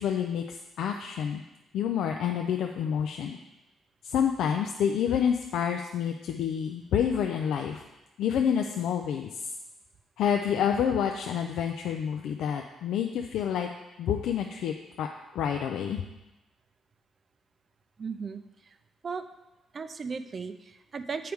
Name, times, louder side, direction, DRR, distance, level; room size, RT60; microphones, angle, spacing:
voice 1, 0.0-1.4 1.7-3.4 4.0-7.8 8.2-9.3 10.2-13.7 14.0-15.1 15.3-16.0, left 8 dB, 80° left, 4 dB, 0.4 m, -28 dB
voice 2, 18.0-18.8 19.0-19.2 19.7-21.3, right 5 dB, 40° right, 9 dB, 0.5 m, -36 dB
7.7 x 4.6 x 3.5 m, 0.99 s
cardioid pair, 90°, 0 cm